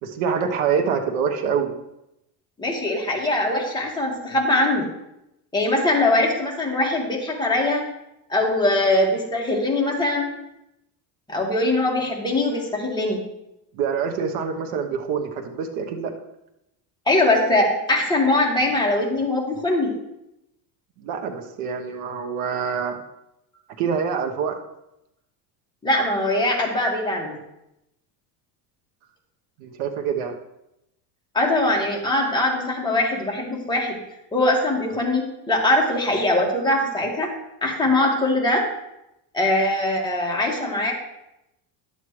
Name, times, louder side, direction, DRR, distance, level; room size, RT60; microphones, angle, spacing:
voice 1, 0.0-1.7 13.7-16.1 21.0-23.0 23.8-24.6 29.6-30.3, right 6 dB, 85° right, 4 dB, 1.1 m, -25 dB
voice 2, 2.6-4.9 5.5-7.8 8.3-10.3 11.3-13.2 17.0-19.9 25.8-27.4 31.3-34.0 34.3-37.3 37.6-38.7 39.3-40.9, left 1 dB, 10° left, -2 dB, 1.7 m, -22 dB
11.0 x 7.4 x 3.2 m, 0.87 s
cardioid pair, 135°, 45 cm